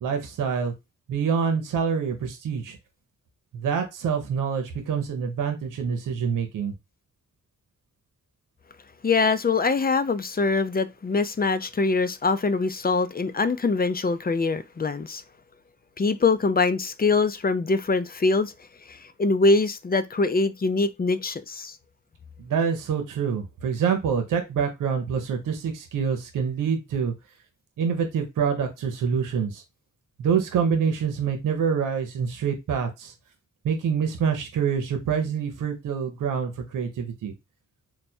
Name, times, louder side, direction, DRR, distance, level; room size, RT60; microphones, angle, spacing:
voice 1, 0.0-0.7 1.1-2.8 3.5-6.7 22.4-27.1 27.8-29.6 30.2-33.1 33.6-37.3, right 6 dB, 90° right, 0.7 m, -26 dB
voice 2, 9.0-15.2 16.0-18.5 18.9-21.8, left 3 dB, 30° left, 0.6 m, -23 dB
3.3 x 2.2 x 4.3 m
supercardioid pair, 40°, 31 cm